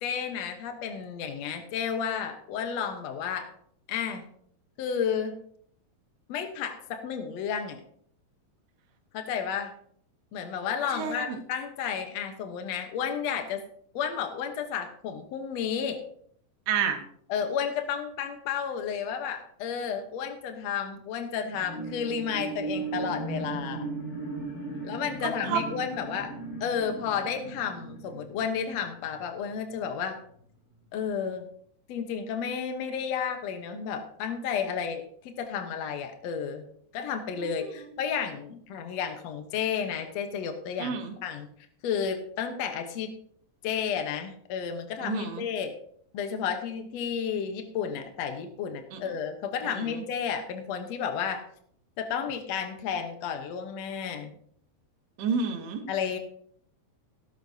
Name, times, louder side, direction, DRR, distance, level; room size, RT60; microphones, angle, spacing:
voice 1, 0.0-3.5 3.9-4.2 4.8-5.3 6.3-7.8 9.1-9.7 10.3-13.6 13.9-16.0 17.3-23.8 24.8-26.3 26.6-30.2 30.9-31.5 31.9-36.6 36.9-41.5 41.8-43.1 43.6-45.7 46.1-51.4 52.0-54.3 55.9-56.2, left 7 dB, 75° left, 5 dB, 1.5 m, -32 dB
voice 2, 10.9-11.4 16.7-17.0 25.5-25.6 37.4-37.7 40.8-41.1 45.0-45.4 48.9-49.0 49.6-50.0 55.2-55.8, right 6 dB, 90° right, 4 dB, 3.7 m, -30 dB
sound 1, 21.5-29.3 29.7-29.8, right 2 dB, 35° left, 3.9 m, -37 dB
17.5 x 12.5 x 2.8 m, 0.64 s
omnidirectional pair, 4.6 m